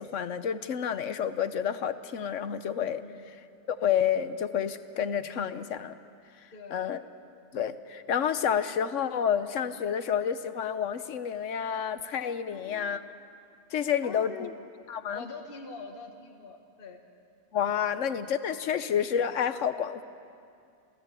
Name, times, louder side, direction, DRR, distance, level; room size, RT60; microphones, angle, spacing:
voice 1, 0.0-3.0 3.7-6.0 6.7-7.0 7.5-13.0 13.7-14.5 14.9-15.2 17.5-20.0, left 8 dB, 55° left, 12 dB, 1.1 m, -29 dB
voice 2, 6.5-6.9 12.5-13.0 14.0-14.6 15.1-17.0 17.9-18.0, left 4 dB, 35° left, 1 dB, 1.8 m, -44 dB
28.5 x 17.0 x 8.4 m, 2.4 s
omnidirectional pair, 1.8 m